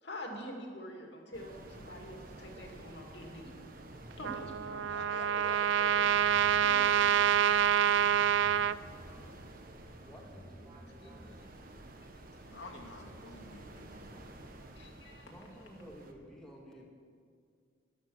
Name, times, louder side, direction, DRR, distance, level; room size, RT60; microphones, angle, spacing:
voice 1, 0.0-3.5 4.2-4.9 9.1-9.2 11.0-11.4 14.8-15.3, equal, 60° left, 1 dB, 2.4 m, -46 dB
sound 1, 1.3-16.1, right 1 dB, 45° right, 1.3 m, -51 dB
sound 2, 3.7-11.7, equal, 15° right, 1.7 m, -55 dB
Trumpet, 4.2-8.8, right 9 dB, 75° right, 0.4 m, -27 dB
voice 2, 4.8-7.1 12.4-14.2 15.5-15.6, left 2 dB, 75° left, -1 dB, 2.3 m, -48 dB
voice 3, 9.9-11.5 15.2-16.9, equal, 5° left, -3 dB, 2.0 m, -53 dB
14.0 x 11.5 x 6.3 m, 2.2 s
head